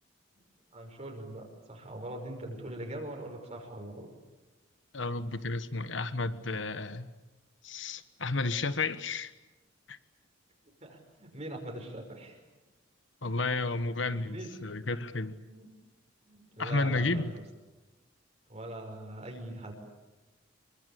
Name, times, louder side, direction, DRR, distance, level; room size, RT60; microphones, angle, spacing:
voice 1, 0.7-4.1 10.8-12.4 14.1-14.5 15.3-15.7 16.3-17.4 18.5-19.7, right 1 dB, 35° right, 1 dB, 5.6 m, -42 dB
voice 2, 4.9-7.1 7.6-9.3 9.9-10.0 13.2-15.4 16.6-17.3, left 3 dB, 70° left, 12 dB, 1.4 m, -32 dB
27.5 x 23.5 x 8.5 m, 1.1 s
head